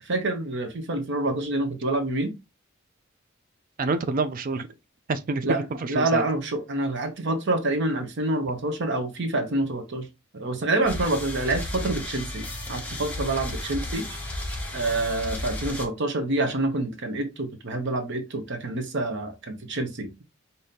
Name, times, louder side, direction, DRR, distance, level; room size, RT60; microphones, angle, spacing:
voice 1, 0.0-2.3 5.4-5.6 5.9-10.1 10.3-14.2 14.7-20.2, right 2 dB, 60° right, 0.8 m, -27 dB
voice 2, 3.8-4.7 5.1-6.2, right 3 dB, 40° right, 0.4 m, -27 dB
sound 1, 10.8-15.9, left 1 dB, 10° left, 0.9 m, -33 dB
5.1 x 2.7 x 2.7 m
head